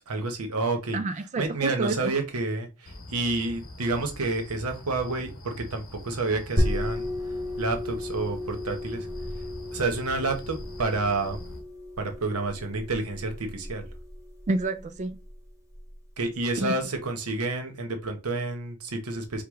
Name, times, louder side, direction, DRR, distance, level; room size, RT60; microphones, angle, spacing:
voice 1, 0.1-1.0 1.4-7.1 7.6-9.1 9.7-11.4 12.0-13.9 16.2-19.4, right 3 dB, 85° right, 1.0 m, -29 dB
voice 2, 0.9-2.1 14.5-15.2 16.6-16.8, right 2 dB, 35° right, 0.3 m, -28 dB
sound 1, 2.8-11.6, left 1 dB, 60° left, 1.1 m, -43 dB
sound 2, 6.6-15.9, left 1 dB, 15° right, 1.1 m, -34 dB
4.8 x 2.3 x 3.6 m
head